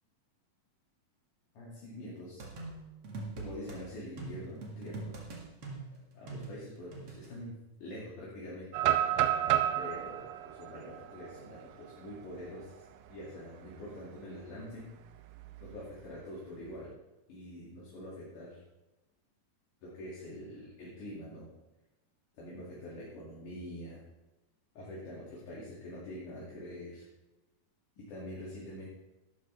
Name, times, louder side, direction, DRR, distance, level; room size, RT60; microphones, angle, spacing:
voice 1, 1.6-2.4 3.4-5.1 5.9-7.5 7.8-9.1 9.8-12.8 13.1-14.9 15.6-16.9 17.3-18.6 19.8-21.5 22.3-24.0 24.8-27.1 28.0-28.9, left 1 dB, 65° left, -6 dB, 3.8 m, -45 dB
sound 1, 2.4-3.8 4.2-7.3, right 3 dB, 45° right, 2.5 m, -43 dB
sound 2, 8.7-12.6 13.1-13.2 13.7-14.0 15.3-16.2, right 11 dB, 85° right, 2.3 m, -32 dB
14.0 x 12.0 x 3.4 m, 1.0 s
omnidirectional pair, 4.0 m